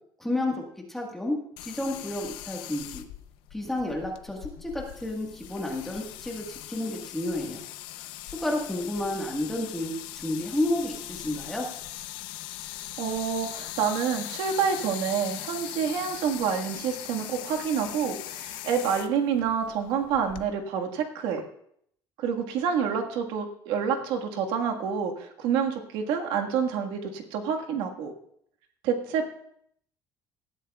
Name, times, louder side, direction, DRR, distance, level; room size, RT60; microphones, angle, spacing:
voice 1, 0.2-0.6 0.9-3.0 3.5-7.6 8.3-11.7, left 1 dB, 5° left, -1 dB, 1.6 m, -31 dB
sound 1, 1.6-20.5, left 14 dB, 80° left, 0.7 m, -40 dB
voice 2, 13.0-21.4 22.2-28.1 28.8-29.3, right 7 dB, 80° right, 3 dB, 1.7 m, -28 dB
18.5 x 13.0 x 2.4 m, 0.69 s
cardioid pair, 175°, 8 cm